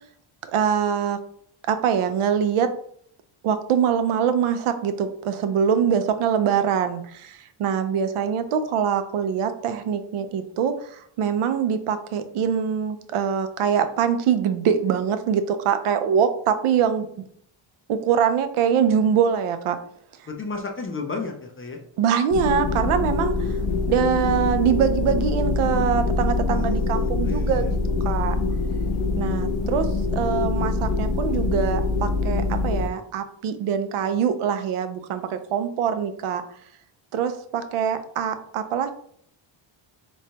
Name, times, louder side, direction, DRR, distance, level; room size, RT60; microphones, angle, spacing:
voice 1, 0.5-1.2 1.7-2.7 3.4-17.1 17.9-19.8 22.0-23.6 23.9-27.8 28.0-28.3 29.2-36.4 37.1-38.9, right 8 dB, 80° right, 10 dB, 0.6 m, -23 dB
voice 2, 20.3-21.8 26.5-27.8, left 4 dB, 25° left, 2 dB, 0.4 m, -33 dB
sound 1, 22.3-32.9, left 3 dB, 75° left, 0.6 m, -24 dB
3.3 x 3.1 x 2.8 m, 0.64 s
wide cardioid pair, 150°, 49 cm